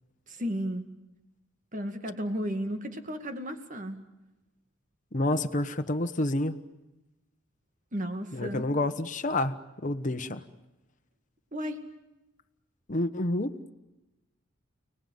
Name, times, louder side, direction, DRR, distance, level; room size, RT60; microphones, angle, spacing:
voice 1, 0.3-0.8 1.7-4.0 7.9-8.7 11.5-11.8, equal, 40° right, 7 dB, 2.3 m, -33 dB
voice 2, 5.1-6.6 8.3-10.4 12.9-13.5, left 1 dB, 40° left, 8 dB, 1.2 m, -29 dB
30.0 x 19.0 x 9.4 m, 1.0 s
head